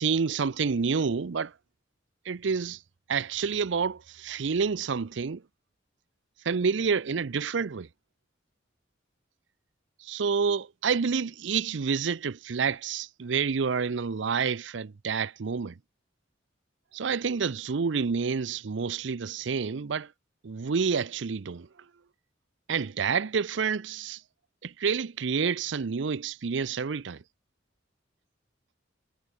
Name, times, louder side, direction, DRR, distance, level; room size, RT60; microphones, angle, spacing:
voice 1, 0.0-1.5 2.3-2.8 3.1-5.4 6.4-7.9 10.0-15.8 16.9-20.1 20.4-21.7 22.7-24.2 24.6-27.2, right 5 dB, 70° right, 0.5 m, -28 dB
head